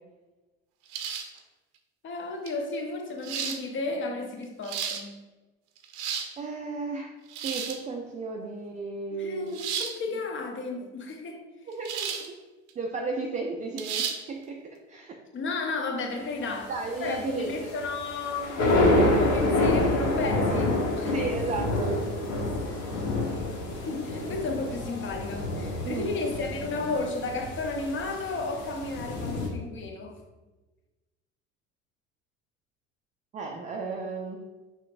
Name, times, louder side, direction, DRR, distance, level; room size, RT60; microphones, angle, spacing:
sound 1, 0.9-1.4 2.5-2.6 3.2-3.6 4.4-5.0 5.8-6.3 7.3-7.8 9.5-10.0 11.9-12.3 12.7-12.8 13.8-14.2, right 7 dB, 65° right, 0.6 m, -32 dB
voice 1, 2.0-5.2 9.1-11.5 15.3-16.7 17.0-18.7 19.2-21.3 23.7-30.1, left 3 dB, 35° left, 3 dB, 0.8 m, -33 dB
voice 2, 6.4-7.2 7.4-9.5 11.7-12.1 12.8-15.2 16.7-17.7 21.1-22.0 25.8-26.1 33.3-34.5, right 3 dB, 20° right, 1 dB, 0.4 m, -34 dB
sound 2, 16.4-29.5, left 2 dB, 50° left, 1.1 m, -28 dB
5.6 x 3.1 x 2.5 m, 1.2 s
figure-of-eight pair, 65°, 36 cm